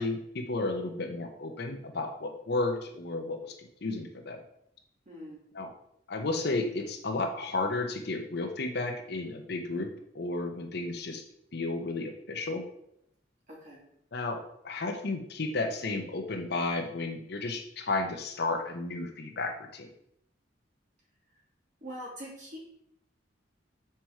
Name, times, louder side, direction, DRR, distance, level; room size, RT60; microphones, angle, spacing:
voice 1, 0.0-3.6 3.8-4.4 5.5-5.7 6.1-9.9 10.1-11.2 11.5-12.6 14.1-19.9, left 2 dB, 60° left, 4 dB, 0.8 m, -33 dB
voice 2, 5.1-5.4 13.5-13.8 21.8-22.6, equal, 40° right, -5 dB, 2.8 m, -43 dB
5.9 x 4.6 x 4.7 m, 0.74 s
head